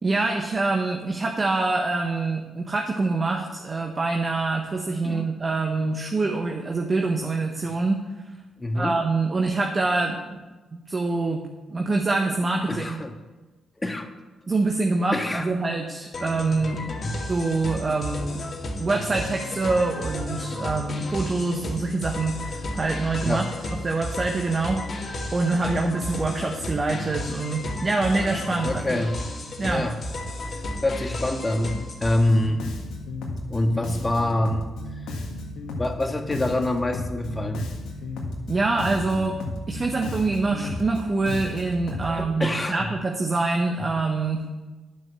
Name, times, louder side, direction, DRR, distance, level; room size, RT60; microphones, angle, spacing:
voice 1, 0.0-8.0 8.7-10.4 10.7-13.0 14.5-16.8 17.3-18.5 18.8-23.4 23.8-29.0 29.6-29.9 38.5-39.4 39.7-44.5, right 3 dB, 40° right, 2 dB, 1.3 m, -25 dB
voice 2, 8.6-9.0 12.7-13.1 13.8-14.1 15.1-15.5 17.0-17.2 23.2-23.5 28.6-29.2 29.6-30.0 30.8-32.7 33.5-34.7 35.8-37.7 42.1-42.9, left 1 dB, 20° left, 4 dB, 1.7 m, -26 dB
sound 1, 16.1-32.4, left 1 dB, 50° left, 2.0 m, -33 dB
Bass guitar, 32.3-42.2, left 2 dB, 80° left, 1.8 m, -34 dB
10.5 x 6.3 x 7.2 m, 1.2 s
supercardioid pair, 50°, 0 cm